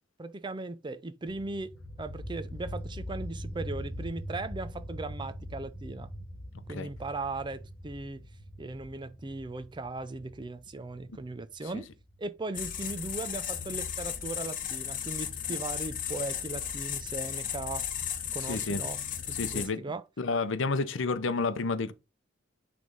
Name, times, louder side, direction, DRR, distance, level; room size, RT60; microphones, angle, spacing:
voice 1, 0.2-1.7 2.0-6.1 6.7-8.3 8.6-11.9 12.2-17.9 18.3-19.0 19.3-20.0, right 2 dB, 25° right, 0.5 m, -38 dB
sound 1, 1.3-12.8, equal, 30° left, 1.5 m, -42 dB
sound 2, 12.5-19.7, left 9 dB, 45° left, 1.0 m, -35 dB
voice 2, 18.5-18.8 19.3-19.8 20.2-21.9, left 3 dB, 70° left, 0.7 m, -30 dB
9.6 x 3.4 x 3.9 m
head